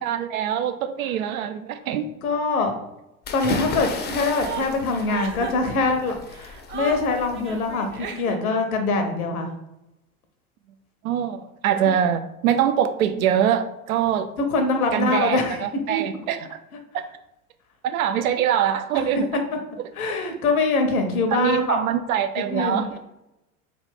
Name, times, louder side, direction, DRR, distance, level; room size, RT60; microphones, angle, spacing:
voice 1, 0.0-2.1 11.0-14.3 14.9-16.6 16.9-17.0 17.8-19.3 19.8-20.2 21.3-22.9, right 9 dB, 75° right, 9 dB, 0.5 m, -24 dB
voice 2, 2.2-2.7 3.3-9.5 14.5-16.0 18.2-18.3 19.1-19.4 19.9-21.8 22.4-23.0, left 3 dB, 75° left, 5 dB, 0.9 m, -24 dB
sound 1, 3.2-8.1, left 3 dB, 25° left, 0.5 m, -34 dB
Chuckle chortle, 3.4-8.6, right 6 dB, 30° right, 0.5 m, -36 dB
3.4 x 2.4 x 3.6 m, 0.91 s
figure-of-eight pair, 85°, 43 cm